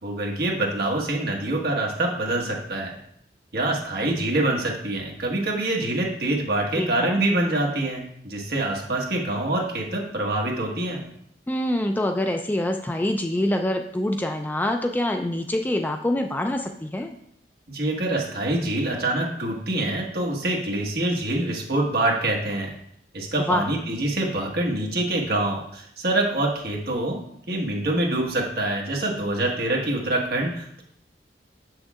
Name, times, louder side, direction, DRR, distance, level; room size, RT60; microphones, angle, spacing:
voice 1, 0.0-3.0 3.5-11.0 17.7-22.7 23.1-27.2 27.5-30.8, right 1 dB, 60° right, 0 dB, 1.4 m, -25 dB
voice 2, 6.8-7.2 11.5-17.2 23.5-23.6, left 1 dB, 10° left, 4 dB, 0.3 m, -25 dB
7.2 x 6.3 x 2.4 m, 0.70 s
head